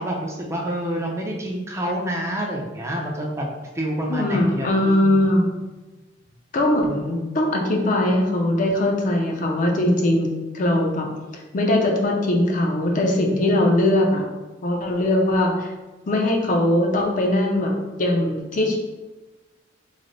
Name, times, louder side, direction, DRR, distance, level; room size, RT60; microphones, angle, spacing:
voice 1, 0.0-3.4 3.7-5.2, right 1 dB, 15° right, -2 dB, 0.4 m, -28 dB
voice 2, 4.1-5.5 6.5-10.3 10.5-11.1 11.5-14.3 14.6-15.7 16.1-18.8, left 1 dB, 45° left, 0 dB, 0.5 m, -20 dB
3.2 x 2.0 x 3.8 m, 1.2 s
head